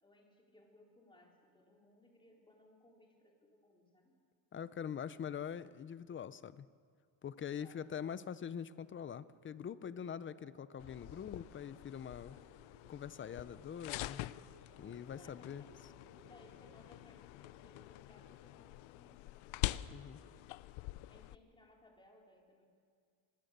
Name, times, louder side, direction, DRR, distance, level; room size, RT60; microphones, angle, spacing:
voice 1, 0.0-4.1 7.6-8.0 12.2-12.5 15.2-15.8 16.2-19.6 21.1-22.6, left 1 dB, 10° left, -1 dB, 4.2 m, -64 dB
voice 2, 4.5-6.7 7.2-12.4 12.9-14.3 14.8-15.6 19.9-20.2, left 8 dB, 25° left, 16 dB, 0.6 m, -44 dB
sound 1, 8.7-18.6, right 5 dB, 30° right, 1.8 m, -67 dB
sound 2, 10.8-21.4, left 17 dB, 80° left, 0.7 m, -45 dB
25.0 x 21.0 x 6.7 m, 2.1 s
cardioid pair, 140°, 47 cm